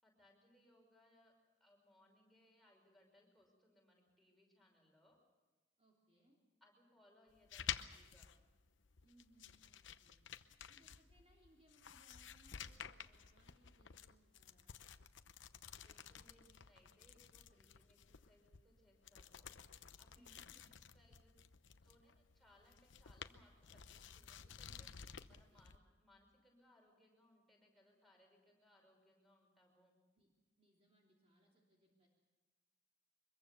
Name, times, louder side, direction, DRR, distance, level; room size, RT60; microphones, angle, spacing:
voice 1, 0.0-1.3 1.6-5.2 6.6-8.3 15.8-19.5 20.0-20.6 20.9-21.4 21.8-25.0 25.3-29.9, left 1 dB, ahead, -1 dB, 5.6 m, -70 dB
voice 2, 5.8-6.4 9.0-10.2 10.7-14.9 20.1-20.6 25.3-25.7 30.1-30.3 30.6-32.1, right 1 dB, 35° right, -2 dB, 3.3 m, -71 dB
sound 1, 7.3-25.8, left 8 dB, 85° left, 0.9 m, -53 dB
24.0 x 22.0 x 7.0 m, 1.2 s
head